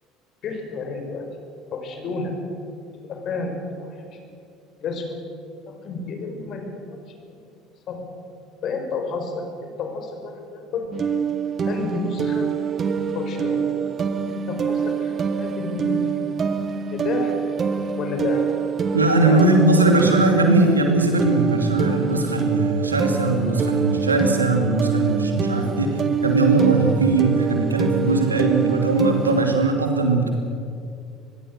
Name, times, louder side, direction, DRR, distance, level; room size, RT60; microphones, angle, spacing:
voice 1, 0.4-1.3 1.7-2.3 3.0-4.2 4.8-5.0 5.7-7.0 7.3-7.4 7.9-8.1 8.6-10.9 11.7-12.5 13.0-13.7 14.3-16.3 16.9-17.3 17.9-18.4 19.2-19.9, left 4 dB, 50° left, 4 dB, 5.1 m, -31 dB
sound 1, 10.9-29.5, right 6 dB, 40° right, 1.6 m, -25 dB
voice 2, 18.9-30.3, right 2 dB, 90° right, 3 dB, 2.8 m, -19 dB
24.5 x 21.5 x 6.6 m, 2.5 s
figure-of-eight pair, 65°, 0 cm